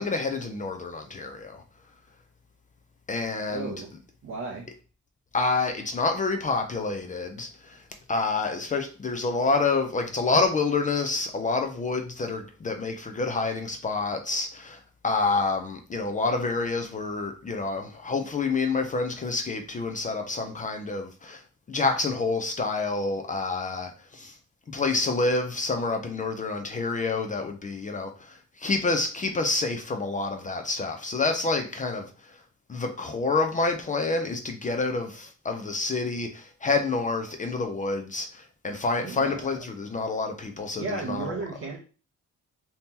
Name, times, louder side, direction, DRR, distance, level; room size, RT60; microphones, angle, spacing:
voice 1, 0.0-1.6 3.1-3.7 5.3-21.4 21.7-24.3 24.7-32.4 32.7-41.4, left 3 dB, 25° left, 0.4 m, -28 dB
voice 2, 3.5-3.9 4.2-4.7 39.0-39.7 40.7-41.8, right 4 dB, 45° right, 0.5 m, -34 dB
2.8 x 2.7 x 3.5 m
wide cardioid pair, 155°, 29 cm